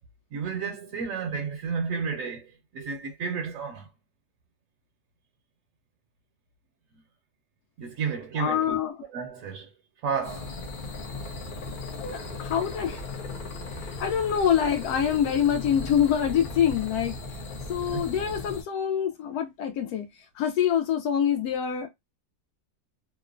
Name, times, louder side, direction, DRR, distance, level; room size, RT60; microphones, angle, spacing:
voice 1, 0.3-2.5 2.7-3.9 7.8-8.8 9.1-9.7 10.0-10.5 17.9-18.0, right 6 dB, 70° right, 0.9 m, -31 dB
voice 2, 8.4-9.0 12.0-13.0 13.8-17.2 17.7-20.0 20.4-21.9, left 9 dB, 80° left, 1.1 m, -25 dB
sound 1, 10.2-18.6, left 2 dB, 60° left, 0.5 m, -37 dB
2.9 x 2.1 x 2.3 m
omnidirectional pair, 1.6 m